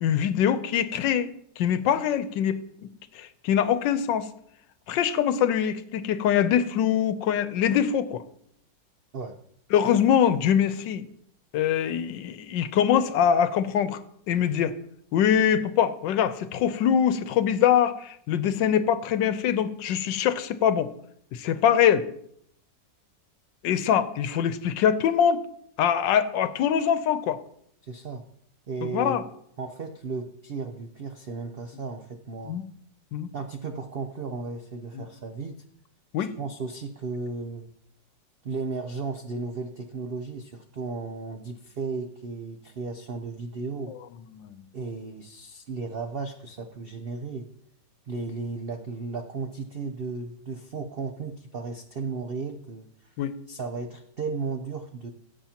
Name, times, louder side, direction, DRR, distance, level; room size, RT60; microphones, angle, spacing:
voice 1, 0.0-2.9 3.1-4.3 4.9-8.2 9.7-11.0 11.5-14.0 14.3-14.8 15.1-20.9 21.3-22.1 23.6-25.5 25.8-27.4 28.8-29.2 32.5-32.7 33.1-33.3 34.9-35.0 36.1-36.3 44.3-44.6 53.2-53.3, left 9 dB, 90° left, 13 dB, 1.4 m, -23 dB
voice 2, 27.8-28.2 28.7-29.2 29.6-32.6 33.3-35.6 36.2-37.7 38.4-43.9 44.7-47.5 48.1-53.1 53.5-55.1, right 4 dB, 85° right, 6 dB, 0.5 m, -35 dB
16.5 x 7.5 x 2.9 m, 0.69 s
omnidirectional pair, 1.9 m